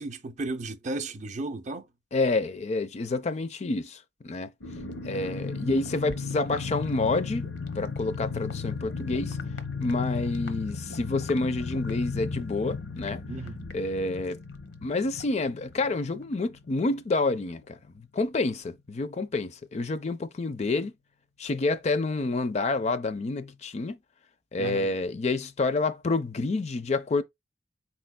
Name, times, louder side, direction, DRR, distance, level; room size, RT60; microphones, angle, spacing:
voice 1, 0.0-1.9 13.3-13.6 24.6-25.0, right 2 dB, 40° right, 0.5 m, -34 dB
voice 2, 2.1-4.5 5.0-7.4 7.7-9.4 9.8-13.2 13.7-14.4 14.8-20.9 21.4-24.0 24.5-27.2, left 3 dB, 40° left, 0.4 m, -28 dB
sound 1, 4.6-17.0 17.2-17.3 17.6-17.9, left 4 dB, 75° left, 0.8 m, -35 dB
4.5 x 4.3 x 2.2 m
head